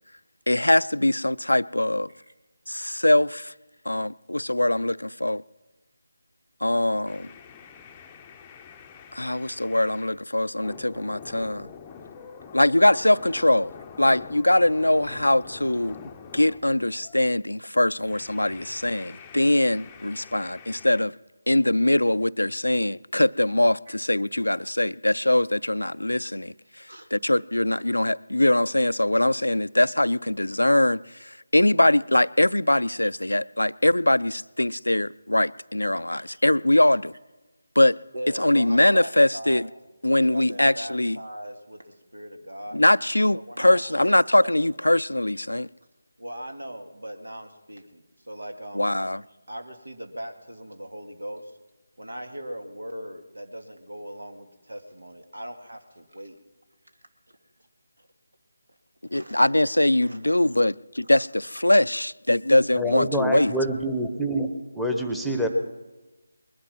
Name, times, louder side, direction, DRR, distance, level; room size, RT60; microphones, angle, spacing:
voice 1, 0.5-2.1 2.7-3.5 3.9-5.4 6.6-7.3 9.1-11.7 12.5-13.7 14.0-16.0 16.3-21.1 21.5-26.5 27.1-37.1 37.8-38.0 38.4-39.7 40.0-41.2 42.7-45.7 48.8-49.2 59.1-63.5, left 1 dB, 85° left, 0.4 m, -22 dB
sound 1, 7.1-10.2 10.6-17.3 18.0-21.0, left 6 dB, 15° left, 0.7 m, -45 dB
voice 2, 37.8-39.7 40.2-42.8 43.3-44.7 46.2-49.1 49.5-51.6 52.0-56.4 57.3-57.4 58.0-58.1 59.1-59.5 60.0-60.4, right 1 dB, 80° right, 2.2 m, -40 dB
voice 3, 62.7-65.5, equal, ahead, 1.1 m, -26 dB
20.5 x 11.0 x 6.0 m
figure-of-eight pair, 160°, 0 cm